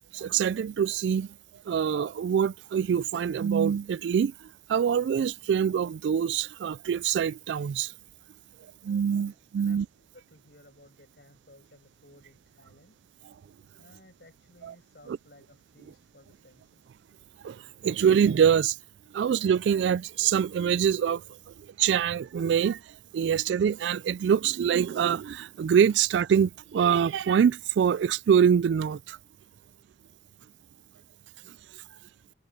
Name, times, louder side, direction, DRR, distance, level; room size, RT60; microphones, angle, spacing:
voice 1, 0.1-1.3 1.7-7.9 8.8-9.9 15.1-15.2 17.4-18.8 19.1-21.4 21.8-22.8 23.1-29.2, right 8 dB, 85° right, 0.3 m, -25 dB
voice 2, 9.1-13.0 13.8-16.9, left 1 dB, 65° left, 7.4 m, -57 dB
head